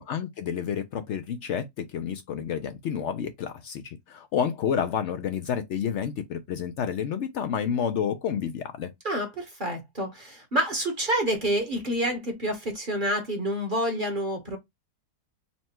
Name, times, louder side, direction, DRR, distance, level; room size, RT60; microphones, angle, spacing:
voice 1, 0.0-8.9, left 8 dB, 70° left, 0.6 m, -30 dB
voice 2, 9.0-14.6, right 1 dB, 35° right, 1.0 m, -28 dB
4.3 x 2.2 x 4.2 m
omnidirectional pair, 1.7 m